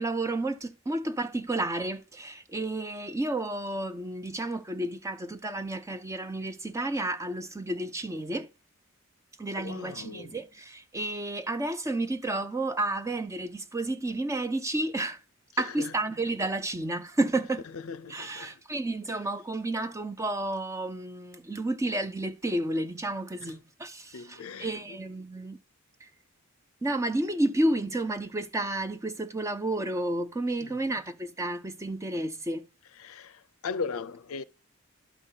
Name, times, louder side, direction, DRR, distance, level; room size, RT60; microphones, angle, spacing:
voice 1, 0.0-8.5 9.4-15.2 15.6-17.6 18.1-25.6 26.0-26.1 26.8-32.7, right 2 dB, 15° right, 0.4 m, -31 dB
voice 2, 9.6-10.4 15.6-15.9 17.7-18.6 23.4-23.5 24.1-24.7 30.6-30.8 33.0-34.4, left 5 dB, 70° left, 0.5 m, -38 dB
12.0 x 5.2 x 2.8 m
head